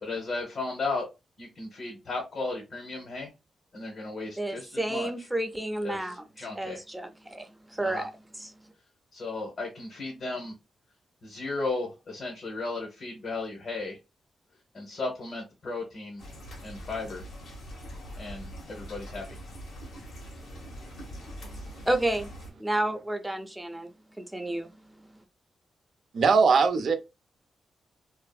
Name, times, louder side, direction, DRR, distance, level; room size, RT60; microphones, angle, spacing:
voice 1, 0.0-1.1 1.4-3.3 3.7-5.3 5.8-6.8 7.8-8.1 9.1-10.5 11.2-14.0 14.7-16.2 16.6-17.3 18.2-19.4, left 3 dB, 55° left, 0.9 m, -35 dB
voice 2, 4.4-6.2 6.5-8.5 21.9-22.3 22.6-23.9 24.2-24.7, right 1 dB, 10° right, 0.5 m, -31 dB
sound 1, 16.2-22.5, equal, 80° left, 1.0 m, -43 dB
voice 3, 26.1-26.9, right 5 dB, 65° right, 0.5 m, -20 dB
2.6 x 2.4 x 2.3 m
cardioid pair, 80°, 0 cm